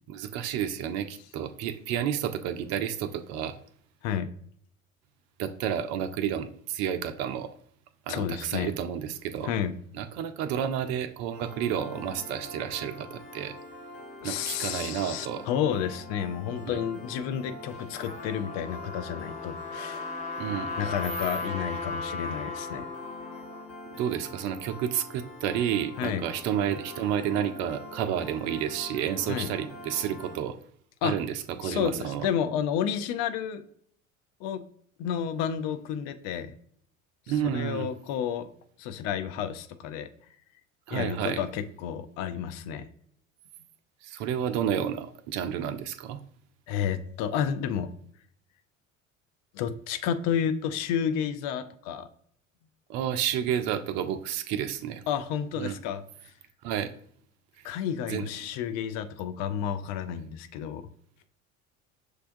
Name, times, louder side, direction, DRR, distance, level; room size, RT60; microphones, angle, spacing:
voice 1, 0.1-3.6 5.4-7.5 8.1-9.5 9.9-13.6 14.2-15.5 16.7-16.8 20.4-20.7 23.9-30.6 31.0-32.3 37.3-37.9 40.9-41.4 44.0-46.2 52.9-55.0 55.6-55.8 56.6-56.9 58.1-58.3, right 9 dB, 45° right, 9 dB, 0.4 m, -30 dB
voice 2, 8.1-8.7 9.4-9.7 14.2-20.3 20.8-22.9 26.0-26.2 29.3-29.5 31.0-31.2 31.6-33.6 34.4-34.6 35.0-36.5 37.4-38.5 38.8-40.1 40.9-42.9 46.7-47.9 49.5-52.1 55.1-56.3 57.6-60.8, left 8 dB, 45° left, 9 dB, 0.4 m, -31 dB
Piano, 11.3-30.4, left 1 dB, 65° left, 1.3 m, -44 dB
Trumpet, 17.7-23.7, left 3 dB, 20° left, 0.8 m, -37 dB
6.3 x 2.2 x 2.5 m, 0.63 s
figure-of-eight pair, 65°, 39 cm